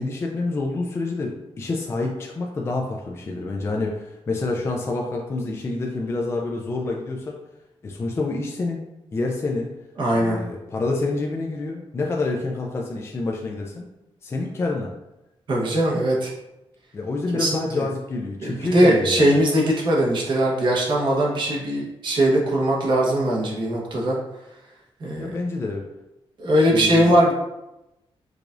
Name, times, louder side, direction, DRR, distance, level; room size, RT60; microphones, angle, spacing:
voice 1, 0.0-7.4 7.8-8.8 9.1-9.7 10.1-13.9 14.2-14.9 16.9-19.4 25.2-25.9 26.7-27.2, left 3 dB, 25° left, 0 dB, 0.3 m, -27 dB
voice 2, 10.0-10.4 15.5-16.3 17.3-17.6 18.4-24.2 25.0-25.3 26.4-27.3, right 1 dB, 50° right, -3 dB, 1.0 m, -20 dB
4.8 x 2.3 x 2.5 m, 0.95 s
wide cardioid pair, 135°, 10 cm